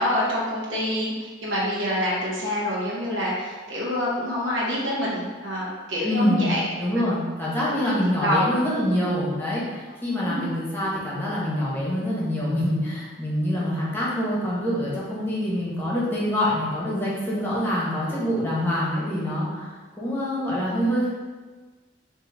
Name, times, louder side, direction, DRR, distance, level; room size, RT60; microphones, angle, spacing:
voice 1, 0.0-6.6 7.7-7.8 8.2-8.4 10.2-10.5, left 1 dB, 80° right, -6 dB, 1.0 m, -26 dB
voice 2, 6.0-6.5 6.8-21.1, equal, 10° left, -7 dB, 0.9 m, -25 dB
3.8 x 2.7 x 3.8 m, 1.4 s
head